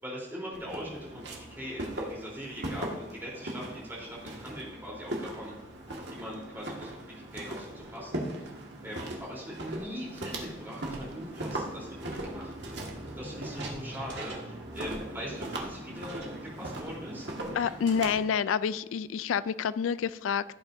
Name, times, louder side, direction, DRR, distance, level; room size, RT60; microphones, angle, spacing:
voice 1, 0.0-5.6 6.1-7.0 7.3-8.5 8.8-12.5 13.2-17.3, equal, 10° right, -5 dB, 3.6 m, -41 dB
Walk footsteps, 0.5-18.2, right 1 dB, 60° right, 1.8 m, -39 dB
voice 2, 17.5-20.4, left 7 dB, 90° left, 16 dB, 0.3 m, -28 dB
16.0 x 8.9 x 2.7 m, 0.98 s
head